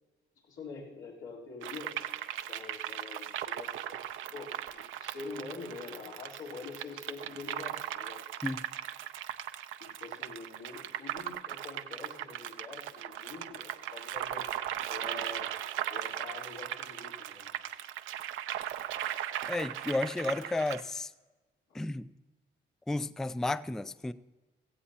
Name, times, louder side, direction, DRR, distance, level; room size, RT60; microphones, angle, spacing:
voice 1, 0.4-2.0 2.5-8.2 9.8-14.6 14.9-15.5 15.9-17.5 21.7-21.8, left 4 dB, 85° left, 3.8 m, -45 dB
sound 1, 1.6-20.8, right 11 dB, 85° right, 0.6 m, -38 dB
voice 2, 19.5-21.1 21.7-22.1 22.9-24.1, left 2 dB, ahead, 0.3 m, -32 dB
16.5 x 15.5 x 2.9 m
cardioid pair, 90°, 20 cm